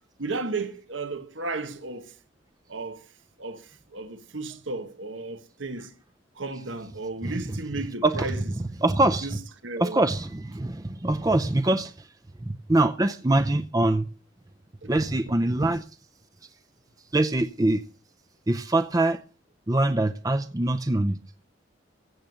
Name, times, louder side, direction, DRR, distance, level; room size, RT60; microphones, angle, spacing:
voice 1, 0.2-2.1 2.7-3.1 3.4-5.9 6.3-8.4 9.2-9.4 9.6-10.0 14.8-15.1, right 3 dB, 90° right, 1.5 m, -34 dB
voice 2, 8.8-9.3 9.8-12.1 12.4-14.1 14.9-15.8 17.1-17.8 18.5-19.2 19.7-21.2, right 2 dB, 20° right, 0.6 m, -23 dB
15.5 x 7.2 x 7.9 m
head